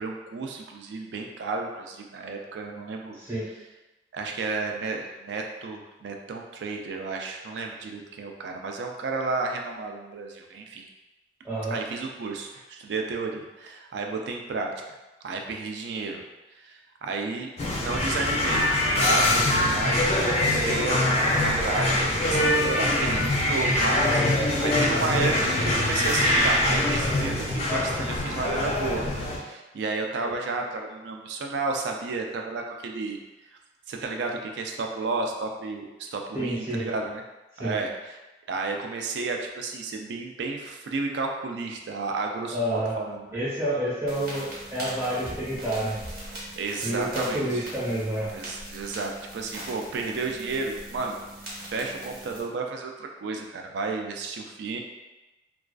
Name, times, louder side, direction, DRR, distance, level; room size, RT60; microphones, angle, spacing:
voice 1, 0.0-3.2 4.1-10.8 11.7-14.7 15.2-16.2 16.6-17.5 17.8-29.1 29.3-33.2 33.9-37.2 37.6-38.2 38.5-43.4 46.6-47.7 48.3-51.2 51.7-54.8, right 3 dB, 80° right, 2 dB, 0.3 m, -32 dB
voice 2, 3.2-3.5 11.4-11.8 30.2-30.4 36.3-36.8 37.6-37.8 42.5-43.0 43.3-46.0 46.8-48.3, right 1 dB, 15° right, -10 dB, 0.7 m, -29 dB
sound 1, 17.6-29.4, left 1 dB, 35° left, 0.3 m, -23 dB
sound 2, 44.1-52.4, right 1 dB, 55° right, 0.8 m, -41 dB
2.3 x 2.3 x 2.3 m, 1.1 s
head